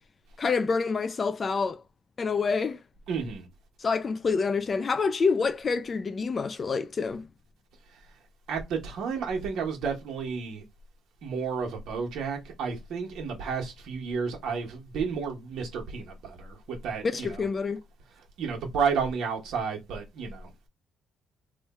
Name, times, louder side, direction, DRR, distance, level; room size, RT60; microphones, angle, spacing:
voice 1, 0.4-1.8 2.2-2.8 3.8-7.3 17.0-17.8, left 5 dB, 30° left, 0.3 m, -27 dB
voice 2, 3.1-3.5 8.5-10.6 11.2-17.4 18.4-20.5, right 5 dB, 65° right, 1.2 m, -31 dB
3.0 x 2.3 x 4.1 m
cardioid pair, 140°, 0 cm